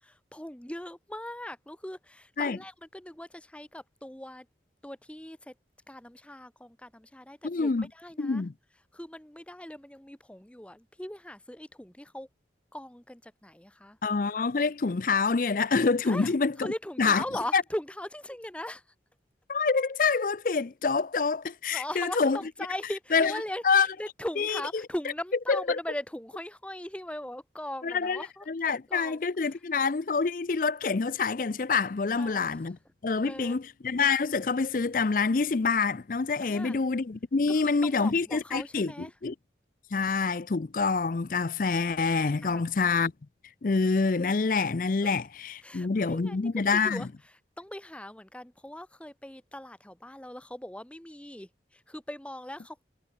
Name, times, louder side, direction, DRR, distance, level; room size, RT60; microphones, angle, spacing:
voice 1, 0.0-4.5 4.8-5.5 5.9-8.4 8.9-12.3 12.7-14.0 16.0-18.9 21.7-29.6 32.1-32.7 33.2-33.6 36.4-36.8 37.5-39.2 42.4-42.6 45.0-45.1 45.6-52.8, left 1 dB, 5° left, 0.8 m, -40 dB
voice 2, 7.4-7.9 8.2-8.5 14.0-16.5 17.0-17.2 17.5-17.6 19.5-22.4 23.1-23.3 23.6-23.9 24.4-24.5 25.5-25.6 27.8-28.2 28.5-32.8 33.0-38.9 39.2-39.3 39.9-43.1 43.6-47.0, left 4 dB, 50° left, 0.5 m, -26 dB
head